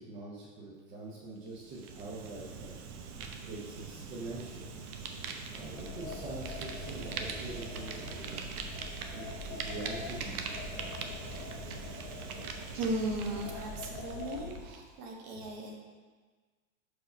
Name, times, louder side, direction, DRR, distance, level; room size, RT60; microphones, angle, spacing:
voice 1, 0.0-2.8 3.2-4.7 5.5-8.5 9.1-10.5, right 2 dB, 20° right, -6 dB, 0.6 m, -44 dB
Fire, 1.5-14.8, right 5 dB, 90° right, 0.9 m, -42 dB
sound 1, 5.5-14.7, left 4 dB, 35° left, 0.6 m, -44 dB
voice 2, 12.7-15.7, right 1 dB, 35° right, 0 dB, 1.0 m, -36 dB
5.3 x 4.8 x 5.1 m, 1.4 s
supercardioid pair, 160°, 42 cm